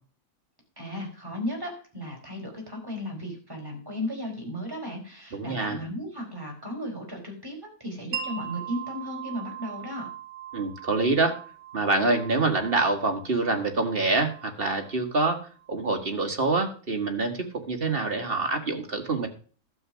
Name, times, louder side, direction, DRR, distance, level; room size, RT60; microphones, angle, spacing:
voice 1, 0.8-10.1, left 1 dB, 15° right, -1 dB, 4.4 m, -35 dB
voice 2, 5.3-5.9 10.5-11.4 11.7-19.3, right 3 dB, 40° right, 4 dB, 1.8 m, -26 dB
Wind chime, 8.1-15.8, right 9 dB, 80° right, 1.6 m, -41 dB
12.5 x 7.2 x 6.2 m, 0.40 s
omnidirectional pair, 1.6 m